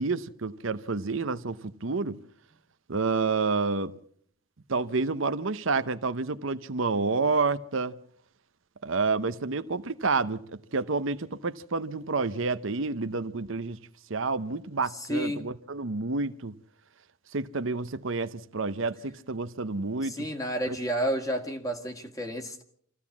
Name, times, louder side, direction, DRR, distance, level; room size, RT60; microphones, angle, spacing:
voice 1, 0.0-2.2 2.9-3.9 4.7-7.9 8.8-10.4 10.7-13.8 14.1-16.5 17.3-20.3, right 4 dB, 70° right, 0.8 m, -29 dB
voice 2, 14.9-15.5 20.0-22.6, equal, 15° left, 1.9 m, -31 dB
25.0 x 15.5 x 7.3 m
head